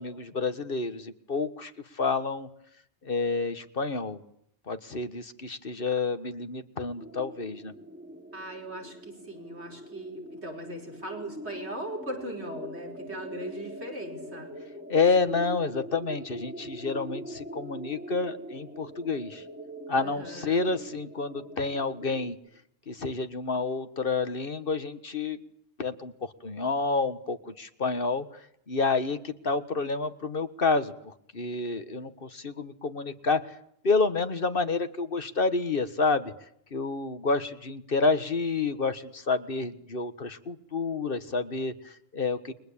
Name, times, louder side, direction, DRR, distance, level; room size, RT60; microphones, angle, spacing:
voice 1, 0.0-2.5 3.0-4.2 4.7-7.7 14.9-19.4 19.9-22.4 22.9-25.4 25.8-33.6 33.8-36.3 36.7-42.5, left 4 dB, 55° left, 11 dB, 1.7 m, -29 dB
sound 1, 7.0-22.3, equal, 10° right, 3.1 m, -43 dB
voice 2, 8.3-14.5 19.9-20.6, right 1 dB, 75° right, 2 dB, 5.6 m, -39 dB
29.5 x 23.0 x 8.7 m, 0.72 s
omnidirectional pair, 1.1 m